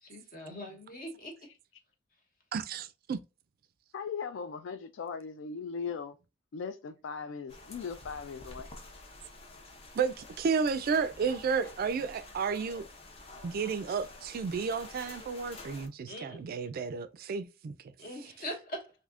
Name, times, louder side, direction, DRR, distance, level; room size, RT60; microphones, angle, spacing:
voice 1, 0.0-1.4 16.1-16.4 18.0-18.9, equal, 50° left, 1.0 m, -42 dB
voice 2, 2.5-3.2 10.0-12.9 13.4-17.7, right 5 dB, 50° right, 0.3 m, -32 dB
voice 3, 3.9-6.2 6.5-8.7, left 5 dB, 70° left, 0.3 m, -38 dB
sound 1, 7.5-15.9, left 2 dB, 30° left, 0.6 m, -49 dB
3.4 x 2.7 x 2.4 m
head